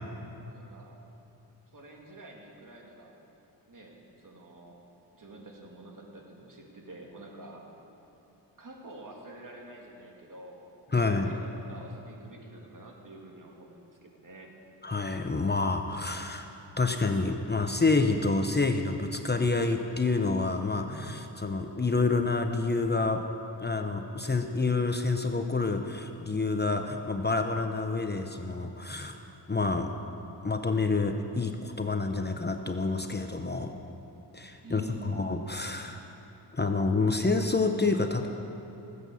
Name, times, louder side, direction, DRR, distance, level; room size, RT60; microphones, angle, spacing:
voice 1, 0.4-1.0 1.7-3.2 3.7-4.8 5.2-7.7 8.6-14.5 34.6-35.3, right 1 dB, 50° right, 0 dB, 2.8 m, -48 dB
voice 2, 10.9-11.3 14.8-16.5 16.8-23.2 23.6-29.1 29.5-29.9 30.4-33.7 34.3-36.0 36.5-38.3, left 3 dB, 25° left, 5 dB, 0.9 m, -28 dB
17.5 x 8.5 x 7.2 m, 2.9 s
cardioid pair, 55°, 42 cm